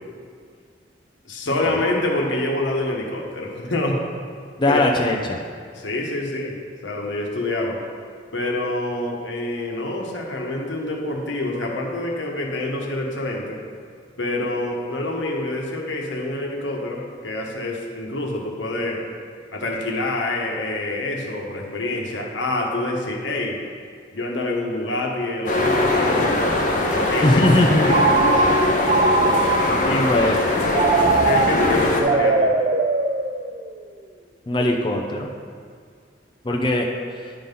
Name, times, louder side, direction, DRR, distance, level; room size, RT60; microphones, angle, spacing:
voice 1, 1.2-4.0 4.7-4.9 5.7-6.6 6.8-7.8 8.3-13.6 14.2-19.0 19.5-23.6 24.1-26.3 26.9-27.4 27.8-28.0 29.8-30.6 31.2-32.5, left 2 dB, 85° left, 0 dB, 1.2 m, -26 dB
voice 2, 4.6-5.4 27.2-27.9 29.9-30.4 34.5-35.3 36.4-36.9, left 1 dB, 25° left, 0 dB, 0.5 m, -20 dB
sound 1, 25.5-32.0, left 2 dB, 45° left, 0.9 m, -21 dB
Telephone, 27.9-29.9 30.7-33.8, right 3 dB, 35° right, 0.4 m, -21 dB
10.0 x 3.9 x 5.3 m, 2.1 s
head